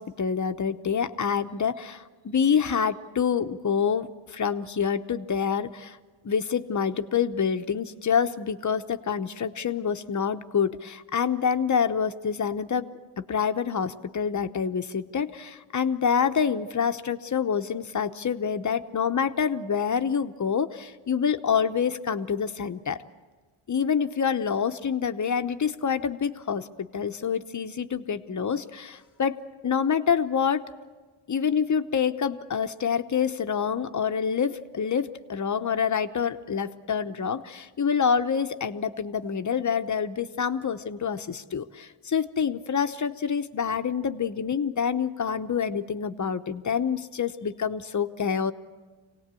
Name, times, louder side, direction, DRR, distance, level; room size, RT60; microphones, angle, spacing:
voice 1, 0.0-6.0 6.2-12.9 13.2-23.0 23.7-29.4 29.6-30.6 31.3-48.5, left 7 dB, 35° left, 9 dB, 0.9 m, -27 dB
24.5 x 18.0 x 8.3 m, 1.4 s
cardioid pair, 85°, 50 cm